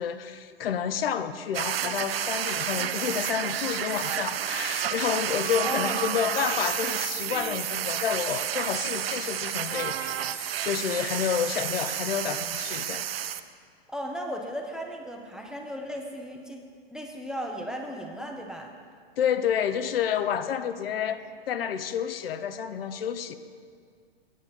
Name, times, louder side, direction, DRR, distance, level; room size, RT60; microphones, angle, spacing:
voice 1, 0.0-13.1 19.2-23.3, left 8 dB, 70° left, 11 dB, 0.6 m, -29 dB
sound 1, 1.5-13.4, right 10 dB, 75° right, 0.5 m, -30 dB
voice 2, 5.6-6.0 13.9-18.7 20.9-21.1, equal, ahead, 2 dB, 0.4 m, -36 dB
8.6 x 8.1 x 4.1 m, 2.1 s
hypercardioid pair, 125°, 30 cm